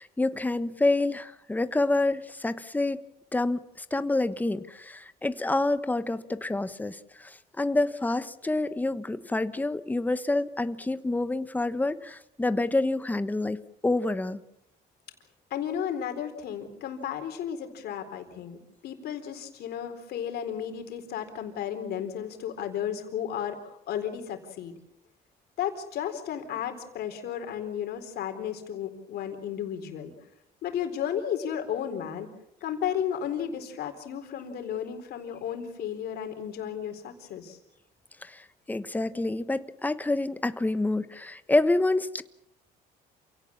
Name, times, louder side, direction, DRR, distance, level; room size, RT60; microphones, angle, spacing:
voice 1, 0.0-3.0 3.3-13.6 13.8-14.4 38.2-42.2, left 2 dB, 10° left, 12 dB, 1.1 m, -28 dB
voice 2, 15.5-24.7 25.6-30.1 30.6-32.3 32.6-37.6, left 9 dB, 70° left, 6 dB, 4.0 m, -33 dB
28.0 x 17.5 x 7.2 m, 0.84 s
cardioid pair, 110°, 17 cm